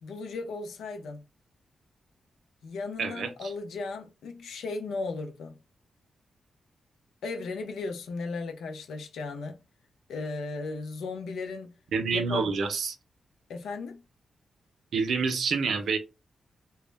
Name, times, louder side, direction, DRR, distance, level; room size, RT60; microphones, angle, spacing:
voice 1, 0.0-1.2 2.6-5.6 7.2-9.6 10.1-11.7 12.1-12.5 13.5-14.0, left 3 dB, 90° left, 0.5 m, -36 dB
voice 2, 3.0-3.5 11.9-13.0 14.9-16.0, right 5 dB, 75° right, 0.5 m, -28 dB
2.1 x 2.0 x 3.1 m
cardioid pair, 70°, 0 cm